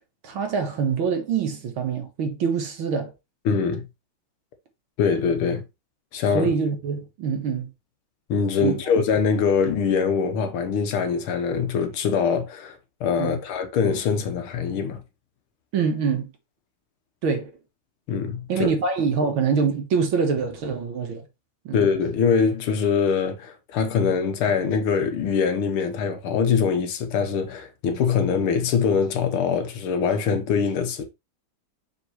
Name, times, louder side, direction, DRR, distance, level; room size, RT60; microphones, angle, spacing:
voice 1, 0.2-3.1 6.3-7.7 8.6-8.8 13.2-13.4 15.7-16.3 17.2-17.5 18.5-21.3 21.7-21.8, right 5 dB, 75° right, 2.1 m, -25 dB
voice 2, 3.5-3.9 5.0-5.6 6.1-6.5 8.3-12.8 13.0-15.0 18.1-18.7 21.7-31.0, left 6 dB, 90° left, 2.0 m, -23 dB
6.0 x 5.4 x 3.1 m
omnidirectional pair, 2.3 m